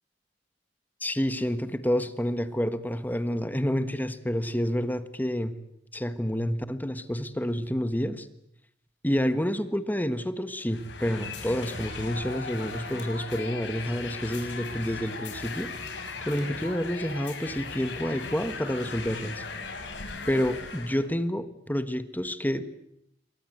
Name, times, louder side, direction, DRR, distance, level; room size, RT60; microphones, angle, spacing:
voice 1, 1.0-5.5 5.9-8.3 9.0-15.7 16.2-19.4 20.3-22.8, equal, 10° left, 11 dB, 1.4 m, -29 dB
Fires - Tiro, 10.7-21.1, left 4 dB, 75° left, 5.8 m, -38 dB
28.0 x 23.5 x 8.0 m, 0.76 s
head